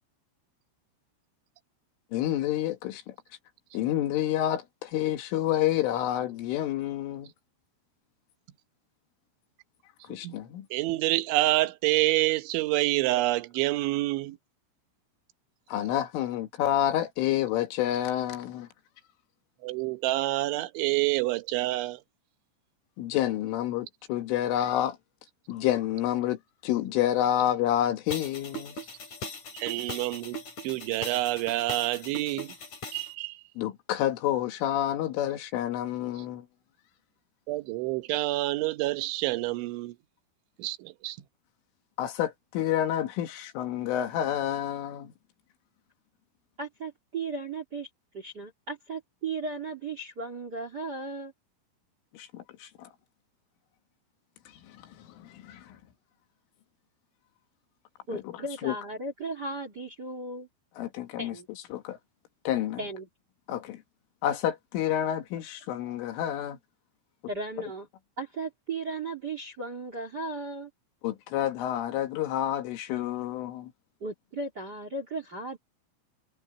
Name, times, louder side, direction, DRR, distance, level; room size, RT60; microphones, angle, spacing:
voice 1, 2.1-3.2 3.7-7.3 10.1-10.7 15.7-18.7 23.0-25.0 25.5-28.8 33.6-36.5 42.0-45.1 52.1-52.9 54.7-55.8 58.1-58.3 58.6-58.8 60.8-61.4 61.7-62.0 62.5-62.8 63.5-63.8 64.2-66.6 71.0-73.7, left 12 dB, 75° left, 4.3 m, -29 dB
voice 2, 10.7-14.4 19.6-22.0 29.5-30.4 30.6-32.5 32.9-33.4 37.5-40.0 40.6-41.2, right 18 dB, 75° right, 3.4 m, -27 dB
sound 1, 28.1-33.1, left 1 dB, 35° left, 6.3 m, -40 dB
voice 3, 46.6-47.9 48.1-51.3 58.1-60.5 61.2-61.5 62.8-63.1 67.3-67.9 68.2-70.7 74.0-75.6, right 3 dB, 30° right, 2.1 m, -36 dB
omnidirectional pair, 5.9 m